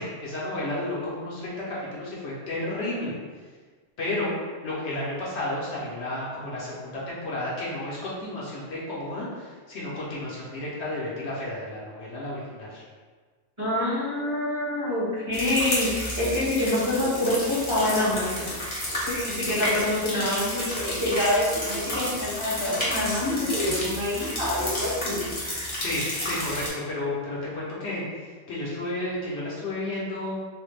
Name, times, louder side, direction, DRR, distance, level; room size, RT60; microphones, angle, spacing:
voice 1, 0.0-3.1 4.0-4.3 4.6-12.8 25.8-30.3, left 1 dB, 65° left, -6 dB, 0.9 m, -32 dB
voice 2, 13.6-18.5 19.0-25.3, left 1 dB, 25° right, -10 dB, 1.0 m, -26 dB
sound 1, 15.3-26.7, left 1 dB, 25° left, 0.7 m, -31 dB
3.4 x 2.1 x 3.1 m, 1.5 s
omnidirectional pair, 1.3 m